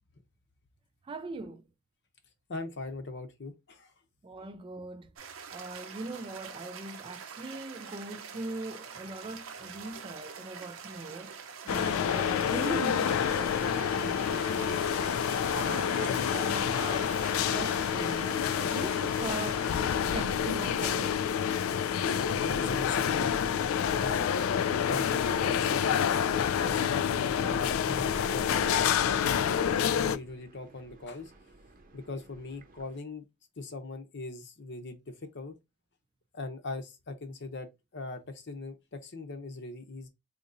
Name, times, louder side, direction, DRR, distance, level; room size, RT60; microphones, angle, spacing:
voice 1, 1.0-1.6 4.2-5.1 5.5-19.7 20.1-21.3, right 3 dB, 25° right, 0.3 m, -41 dB
voice 2, 2.5-3.9 22.4-23.6 23.9-24.5 24.9-31.3 31.9-33.2 33.6-35.6 36.3-40.1, left 3 dB, 60° left, 0.7 m, -41 dB
sound 1, 5.2-20.1, right 6 dB, 75° right, 0.7 m, -45 dB
sound 2, 11.7-30.2, left 8 dB, 90° left, 0.3 m, -28 dB
sound 3, 22.2-33.0, right 1 dB, 45° right, 0.7 m, -50 dB
3.8 x 2.8 x 2.5 m
head